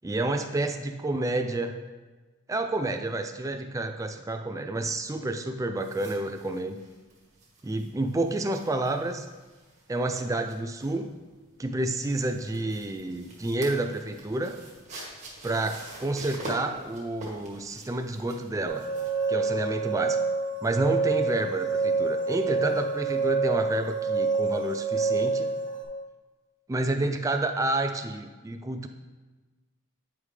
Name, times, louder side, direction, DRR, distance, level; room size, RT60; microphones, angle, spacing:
voice 1, 0.0-1.7 2.5-6.8 7.6-9.3 9.9-11.1 11.6-14.6 15.4-18.9 19.3-20.2 20.6-25.5 26.7-28.9, right 2 dB, 15° right, 6 dB, 0.3 m, -29 dB
sound 1, 5.8-19.3, right 1 dB, 35° right, 1.5 m, -45 dB
sound 2, 18.7-25.8, right 4 dB, 35° left, 1.1 m, -27 dB
9.3 x 4.8 x 3.2 m, 1.2 s
head